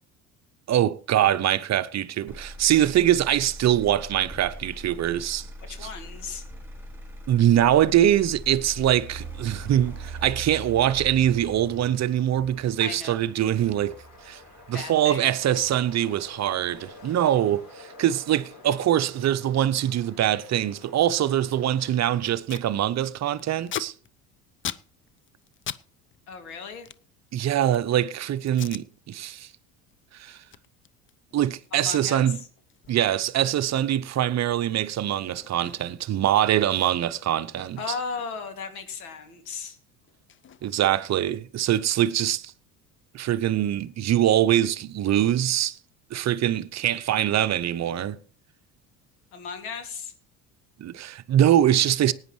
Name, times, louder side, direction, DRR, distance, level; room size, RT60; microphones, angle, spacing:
voice 1, 0.7-5.5 7.3-14.0 14.2-14.4 14.7-23.9 27.3-29.5 30.1-30.4 31.3-32.4 32.9-37.9 40.6-42.5 43.1-45.8 46.1-48.2 50.8-52.1, right 11 dB, 40° right, 0.7 m, -23 dB
Motor vehicle (road), 2.3-16.3 16.8-17.3, right 1 dB, 5° right, 3.4 m, -41 dB
voice 2, 5.6-6.4 12.8-13.2 14.7-15.2 26.3-26.9 31.7-32.5 37.8-39.8 49.3-50.1, left 5 dB, 85° left, 2.5 m, -36 dB
sound 1, 9.4-21.9, left 3 dB, 50° left, 7.6 m, -50 dB
Packing tape duct tape, 22.5-22.7 23.0-25.9 26.1-27.9 28.5-28.9 29.3-29.5 29.9-36.1 36.4-36.5 36.7-39.1 39.3-41.3, left 9 dB, 30° left, 0.6 m, -42 dB
18.5 x 9.6 x 3.2 m
hypercardioid pair, 75°, 43 cm